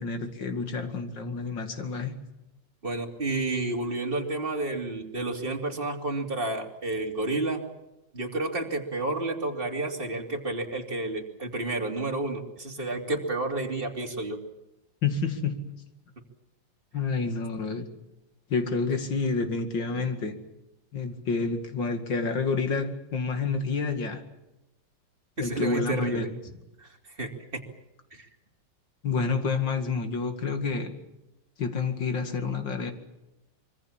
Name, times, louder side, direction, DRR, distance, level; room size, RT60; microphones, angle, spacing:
voice 1, 0.0-2.1 15.0-15.8 16.9-17.8 18.5-20.4 20.9-24.2 25.4-26.3 29.0-30.9 31.6-32.9, left 4 dB, 75° left, 7 dB, 3.0 m, -29 dB
voice 2, 2.8-7.6 8.1-14.4 25.4-26.3 26.8-27.6 28.1-28.3, right 2 dB, 30° right, 2 dB, 3.1 m, -30 dB
25.0 x 24.0 x 7.5 m, 0.93 s
omnidirectional pair, 2.0 m